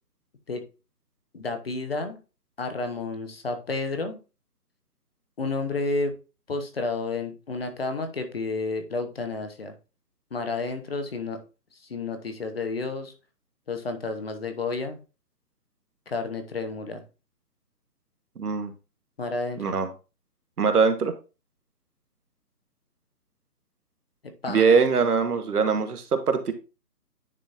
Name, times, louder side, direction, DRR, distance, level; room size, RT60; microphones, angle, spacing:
voice 1, 1.3-2.2 2.6-4.2 5.4-6.1 6.5-9.7 10.3-11.4 11.7-13.1 13.7-15.0 16.1-17.0 19.2-19.6 24.4-24.8, left 3 dB, 35° left, 7 dB, 0.9 m, -31 dB
voice 2, 18.4-18.7 19.6-19.9 20.6-21.1 24.5-26.5, right 5 dB, 65° right, 8 dB, 1.3 m, -22 dB
9.9 x 4.0 x 2.5 m, 0.31 s
hypercardioid pair, 160°, 49 cm